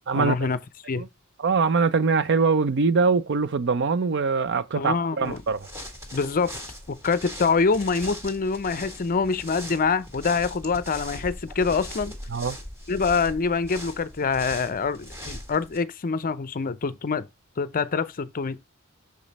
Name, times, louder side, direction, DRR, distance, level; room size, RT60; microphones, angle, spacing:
voice 1, 0.1-0.6 0.9-1.0 4.7-5.4 6.1-6.5 6.9-12.1 12.9-17.2 17.6-18.6, left 5 dB, 40° left, 0.5 m, -25 dB
voice 2, 1.4-5.7 12.3-12.6, right 4 dB, 55° right, 0.5 m, -23 dB
sound 1, 5.2-15.8, equal, 15° right, 1.9 m, -40 dB
6.5 x 5.2 x 4.1 m
head